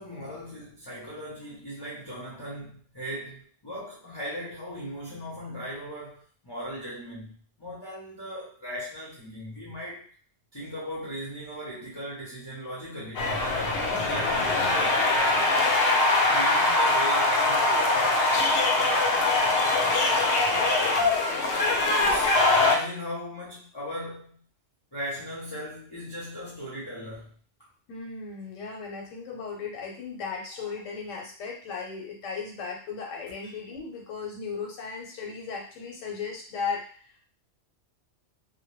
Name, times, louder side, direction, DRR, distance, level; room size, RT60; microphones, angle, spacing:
voice 1, 0.0-10.1 10.5-13.5 13.8-15.9 16.3-18.3 18.8-21.2 22.0-24.4 24.9-27.3, equal, 30° left, -7 dB, 0.5 m, -38 dB
sound 1, 13.1-22.7, left 2 dB, 65° left, 0.7 m, -23 dB
voice 2, 27.9-37.2, left 5 dB, 90° left, 0 dB, 1.1 m, -36 dB
2.2 x 2.1 x 3.0 m, 0.44 s
omnidirectional pair, 1.3 m